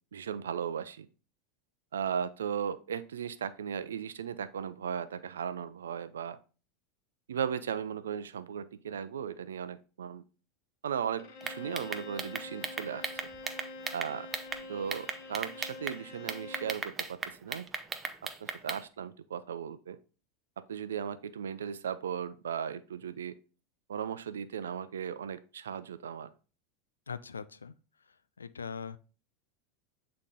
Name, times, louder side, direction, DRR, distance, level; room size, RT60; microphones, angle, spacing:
voice 1, 0.1-1.1 1.9-6.4 7.3-10.2 10.8-13.1 13.9-14.3 14.7-17.7 18.4-20.0 20.7-23.4 23.9-26.3, right 8 dB, 75° right, 0.5 m, -36 dB
Bowed string instrument, 11.2-16.9, left 2 dB, 55° left, 1.3 m, -46 dB
sound 1, 11.4-14.6 14.9-16.0 16.3-18.8, right 4 dB, 20° right, 0.8 m, -36 dB
voice 2, 27.1-27.7 28.4-29.0, left 6 dB, 80° left, 0.4 m, -40 dB
8.1 x 3.8 x 3.5 m
figure-of-eight pair, 85°, 0 cm